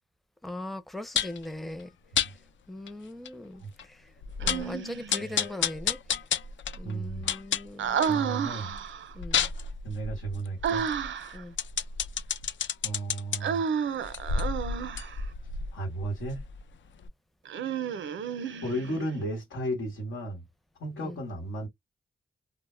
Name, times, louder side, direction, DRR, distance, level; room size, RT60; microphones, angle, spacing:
voice 1, 0.4-1.9 2.7-3.6 3.9-4.0 4.4-6.0 6.8-8.0 9.2-9.4 11.3-11.5 21.0-21.2, left 1 dB, ahead, 0.5 m, -39 dB
sound 1, 1.2-1.4 2.2-2.3 2.9-3.0 3.3-3.4 3.8-3.9 4.2-4.7 5.1-8.2 8.6-13.4 14.0-16.7 17.0-17.1, left 7 dB, 65° left, 0.4 m, -31 dB
Human voice, 4.4-5.3 7.8-9.1 10.6-11.4 13.4-15.2 17.5-19.1, right 7 dB, 70° right, 0.5 m, -31 dB
voice 2, 6.8-7.4 8.0-8.7 9.8-10.8 12.8-13.6 15.7-16.4 18.6-20.4 20.8-21.7, right 1 dB, 90° left, 1.1 m, -34 dB
2.1 x 2.0 x 3.1 m
cardioid pair, 50°, 21 cm